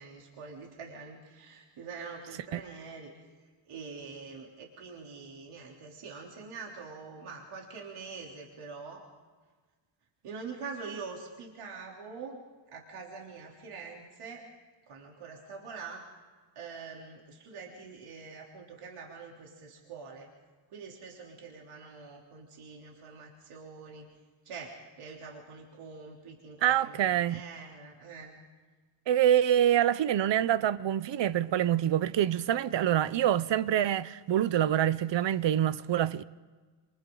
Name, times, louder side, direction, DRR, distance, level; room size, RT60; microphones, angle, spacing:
voice 1, 0.0-3.3 3.7-9.1 10.2-12.4 12.7-14.5 14.9-16.1 16.6-20.3 20.7-24.1 24.5-28.4, right 5 dB, 85° right, 3.5 m, -45 dB
voice 2, 26.6-27.4 29.1-36.2, right 11 dB, 60° right, 0.8 m, -26 dB
29.0 x 27.5 x 3.9 m
wide cardioid pair, 165°, 50 cm